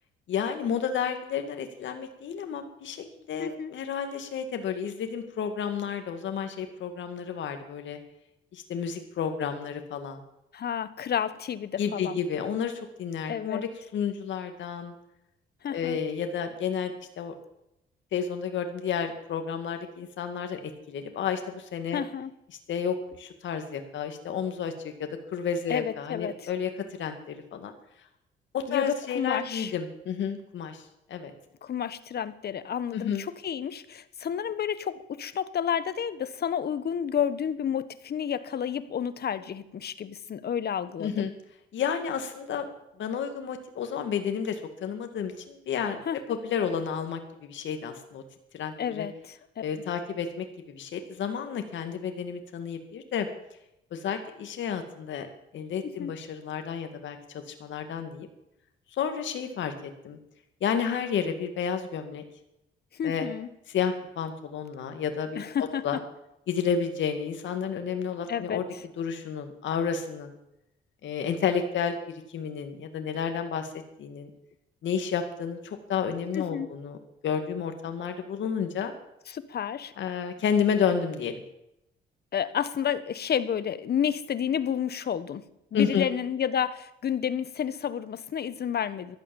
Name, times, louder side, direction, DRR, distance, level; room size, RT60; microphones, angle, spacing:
voice 1, 0.3-8.0 8.5-10.2 11.8-14.9 15.7-17.3 18.1-22.0 22.7-26.7 27.0-27.7 28.5-30.8 31.1-31.3 32.9-33.2 41.0-41.3 41.7-42.7 43.0-46.0 46.3-48.2 48.5-49.1 49.6-53.3 53.9-55.3 55.5-58.3 58.9-60.2 60.6-62.2 63.0-63.3 63.7-65.4 65.8-66.0 66.5-68.6 69.0-70.3 71.0-72.0 72.3-74.3 74.8-77.0 77.2-78.9 80.0-81.4 85.7-86.1, left 7 dB, 70° left, 6 dB, 2.1 m, -31 dB
voice 2, 3.4-3.7 10.5-12.2 13.3-13.6 15.6-16.0 21.9-22.3 25.7-26.5 28.7-29.7 31.6-41.3 46.0-46.4 48.8-49.4 55.8-56.2 63.0-63.5 65.3-66.0 68.3-68.8 76.3-76.7 79.3-79.9 82.3-85.4 85.7-89.2, left 8 dB, 55° left, 14 dB, 1.2 m, -30 dB
15.5 x 12.0 x 7.1 m, 0.83 s
cardioid pair, 90°, 20 cm